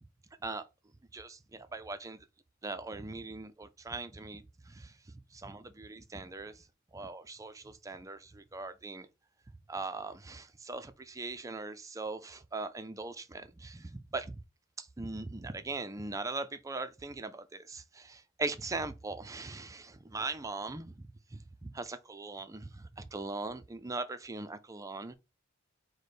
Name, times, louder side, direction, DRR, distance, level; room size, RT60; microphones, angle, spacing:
voice 1, 1.1-2.2 2.6-4.9 5.3-6.6 6.9-9.1 9.7-14.4 14.8-25.1, right 3 dB, 15° right, 0.4 m, -40 dB
4.9 x 2.2 x 4.1 m
head